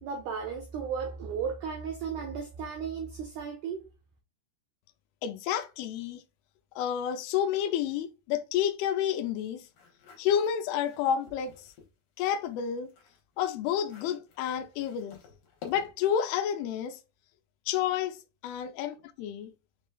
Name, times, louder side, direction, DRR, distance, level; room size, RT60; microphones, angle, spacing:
voice 1, 0.0-3.9, right 6 dB, 85° right, 1.7 m, -35 dB
voice 2, 5.2-6.2 6.8-9.7 10.2-11.7 12.2-12.9 13.4-15.2 15.7-17.0 17.7-18.2 18.4-19.5, left 9 dB, 80° left, 2.5 m, -30 dB
sound 1, 9.7-11.9 12.4-16.2, left 6 dB, 65° left, 2.6 m, -52 dB
6.0 x 3.1 x 2.2 m
omnidirectional pair, 4.5 m